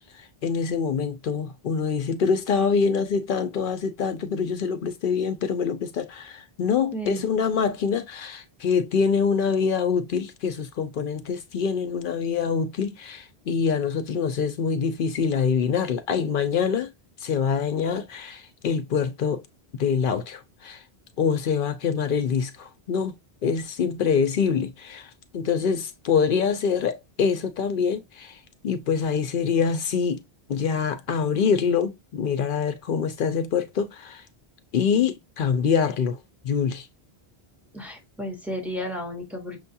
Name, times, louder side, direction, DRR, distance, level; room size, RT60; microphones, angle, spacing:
voice 1, 0.1-16.9 17.2-19.4 19.8-20.8 21.2-23.2 23.4-28.4 28.6-30.2 30.5-34.2 34.7-36.9, left 6 dB, 60° left, 0.7 m, -25 dB
voice 2, 6.9-7.2 37.7-39.6, equal, ahead, 0.9 m, -33 dB
6.3 x 2.3 x 2.6 m
omnidirectional pair, 1.1 m